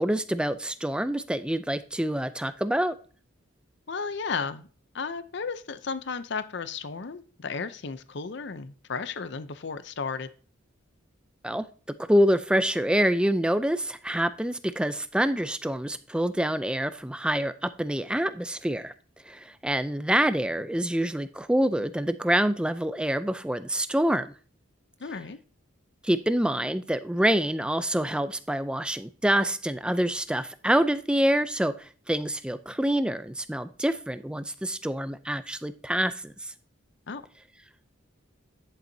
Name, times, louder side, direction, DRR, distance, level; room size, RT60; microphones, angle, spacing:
voice 1, 0.0-3.0 11.4-11.6 12.0-18.9 19.2-24.3 26.0-36.5, right 1 dB, 5° right, 12 dB, 0.4 m, -26 dB
voice 2, 3.9-4.7 4.9-10.3 25.0-25.4 37.1-37.2, left 5 dB, 55° left, 12 dB, 0.6 m, -34 dB
10.5 x 7.2 x 2.7 m, 0.40 s
head